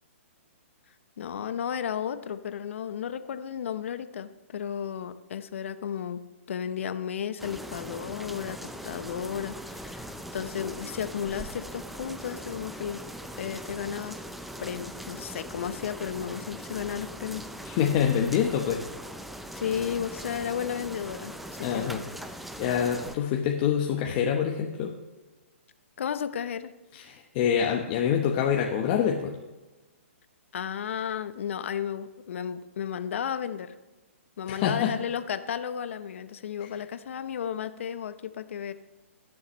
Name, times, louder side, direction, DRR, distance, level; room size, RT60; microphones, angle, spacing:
voice 1, 1.2-6.2 6.5-13.0 13.4-14.2 14.6-17.5 19.5-21.9 26.0-26.7 30.5-33.7 34.4-38.7, left 8 dB, 65° left, 12 dB, 0.8 m, -33 dB
sound 1, 7.4-23.2, right 1 dB, ahead, 0.4 m, -41 dB
voice 2, 17.6-18.8 21.6-22.0 22.3-24.9 26.9-29.4 34.5-34.9 36.6-36.7, left 8 dB, 35° left, 1 dB, 1.0 m, -26 dB
20.5 x 7.2 x 3.2 m, 1.2 s
hypercardioid pair, 145°, 7 cm